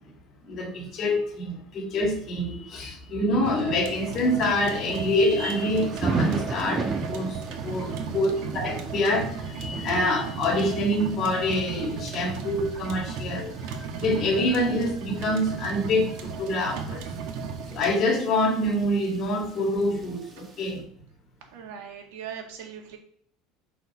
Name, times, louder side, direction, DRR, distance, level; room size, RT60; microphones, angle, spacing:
voice 1, 0.4-13.5 14.0-17.0 17.7-20.9, left 1 dB, 40° left, 1 dB, 2.1 m, -26 dB
sound 1, 3.4-17.9, right 5 dB, 65° right, 1.3 m, -35 dB
Thunder / Rain, 3.9-20.7, right 4 dB, 25° right, 1.2 m, -37 dB
voice 2, 7.9-8.2 21.5-23.0, right 8 dB, 80° right, 3 dB, 1.8 m, -40 dB
6.5 x 4.6 x 4.8 m, 0.63 s
supercardioid pair, 135°, 0 cm